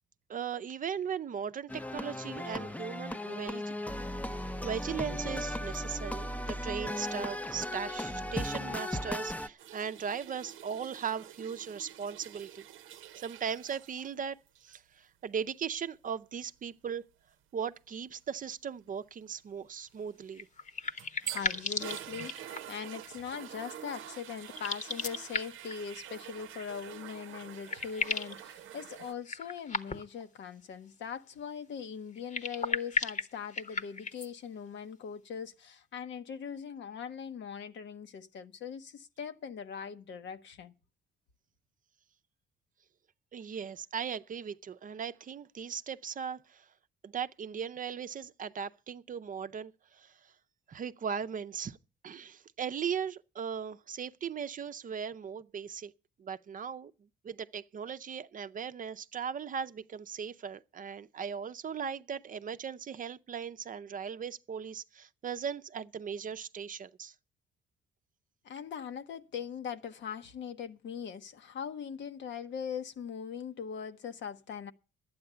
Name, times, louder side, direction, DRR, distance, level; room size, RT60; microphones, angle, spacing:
voice 1, 0.3-3.7 4.3-12.7 13.2-14.4 14.6-17.0 17.5-20.5 43.3-46.7 47.0-50.1 50.7-51.8 52.0-55.9 56.2-56.9 57.2-67.1, right 7 dB, 45° right, 0.6 m, -38 dB
sound 1, 1.7-9.5, left 1 dB, 5° left, 0.6 m, -36 dB
sound 2, 9.6-14.1 14.5-14.8 20.6-29.1, right 11 dB, 80° right, 0.7 m, -46 dB
sound 3, 20.3-22.9 24.5-25.8 27.1-27.2 27.4-28.4 29.2-30.2 32.1-34.3, left 4 dB, 35° left, 1.1 m, -35 dB
voice 2, 21.2-40.7 68.4-74.7, left 7 dB, 65° left, 1.0 m, -41 dB
11.5 x 8.7 x 6.8 m
cardioid pair, 90°, 20 cm